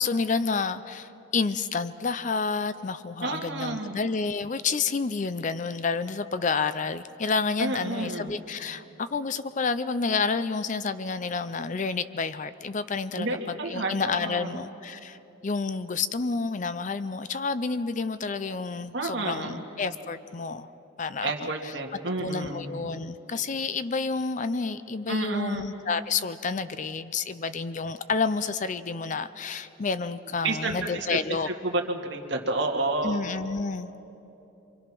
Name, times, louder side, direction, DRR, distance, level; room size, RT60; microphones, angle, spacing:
voice 1, 0.0-15.2 15.4-20.7 21.0-21.3 22.2-31.5 33.0-33.9, left 4 dB, 35° left, 13 dB, 0.5 m, -29 dB
voice 2, 3.2-4.0 7.6-8.3 13.2-14.6 18.9-19.6 21.2-22.7 25.1-25.6 30.3-31.2 31.4-33.2, right 2 dB, 60° right, 1 dB, 2.2 m, -30 dB
28.0 x 24.5 x 6.1 m, 2.9 s
head